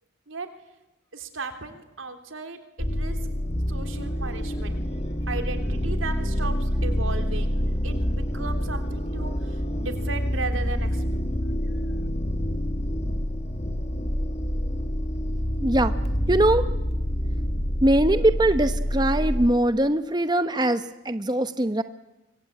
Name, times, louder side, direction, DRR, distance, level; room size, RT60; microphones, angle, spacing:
voice 1, 1.1-3.2 3.7-4.8 5.3-11.3 11.9-12.0, right 3 dB, 85° right, 7 dB, 3.4 m, -36 dB
sound 1, 2.8-19.5, equal, 30° left, 1.5 m, -27 dB
voice 2, 15.6-15.9 16.3-16.7 17.8-21.8, right 1 dB, 20° right, 10 dB, 0.9 m, -22 dB
25.5 x 24.5 x 8.9 m, 0.98 s
head